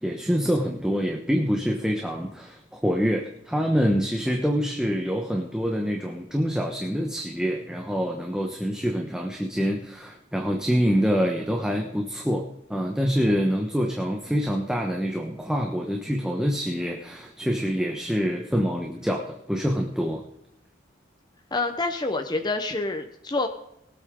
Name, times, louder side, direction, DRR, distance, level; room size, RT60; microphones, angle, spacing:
voice 1, 0.0-20.2, equal, 5° right, 1 dB, 1.2 m, -26 dB
voice 2, 21.5-23.5, left 3 dB, 20° left, 5 dB, 0.9 m, -27 dB
22.0 x 8.2 x 3.8 m, 0.79 s
head